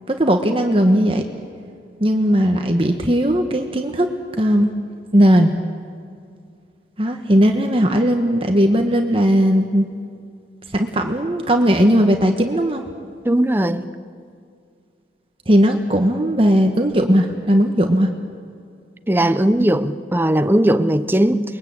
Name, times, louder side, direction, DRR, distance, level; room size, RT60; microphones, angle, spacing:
voice 1, 0.1-1.2 2.0-4.1 4.4-4.7 5.1-5.5 7.0-9.9 10.7-12.8 15.5-18.1, equal, 30° right, 1.4 m, -17 dB
voice 2, 13.2-13.9 19.1-21.4, right 1 dB, 10° right, 0.8 m, -18 dB
29.5 x 22.0 x 8.8 m
head